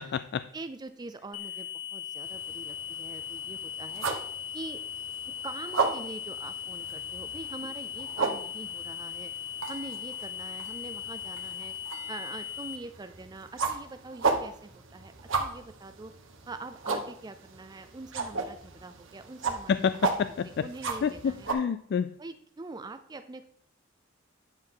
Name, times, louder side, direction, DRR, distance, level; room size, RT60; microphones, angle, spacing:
voice 1, 0.0-0.4 19.7-20.7 21.0-22.1, left 7 dB, 55° left, 14 dB, 0.3 m, -28 dB
voice 2, 0.5-4.0 4.5-4.8 5.4-9.3 9.7-11.7 12.1-15.1 15.4-16.1 16.5-21.5 22.2-23.5, right 3 dB, 20° right, 9 dB, 0.4 m, -44 dB
sound 1, 1.3-12.8, left 9 dB, 90° left, 0.9 m, -38 dB
sound 2, 2.2-21.5, right 4 dB, 75° right, 1.3 m, -35 dB
10.5 x 6.4 x 3.8 m, 0.64 s
head